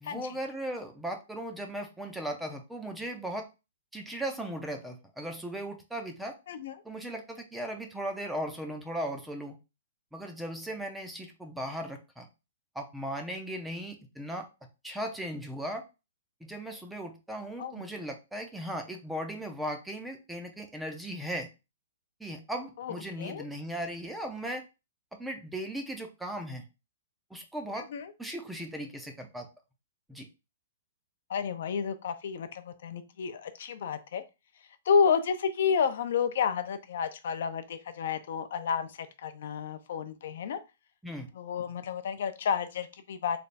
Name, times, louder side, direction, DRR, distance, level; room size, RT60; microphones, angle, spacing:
voice 1, 0.0-3.5 3.9-6.4 6.8-9.5 10.1-12.3 12.7-14.5 14.8-15.8 16.4-21.5 22.2-24.6 25.2-26.6 27.3-27.9 28.2-29.5 30.1-30.3 41.0-41.3, right 1 dB, 5° right, 4 dB, 0.5 m, -37 dB
voice 2, 22.8-23.5 27.8-28.1 31.3-34.2 34.9-40.6 41.4-43.4, left 6 dB, 55° left, 10 dB, 0.5 m, -30 dB
3.3 x 2.3 x 4.0 m, 0.27 s
hypercardioid pair, 165°, 0 cm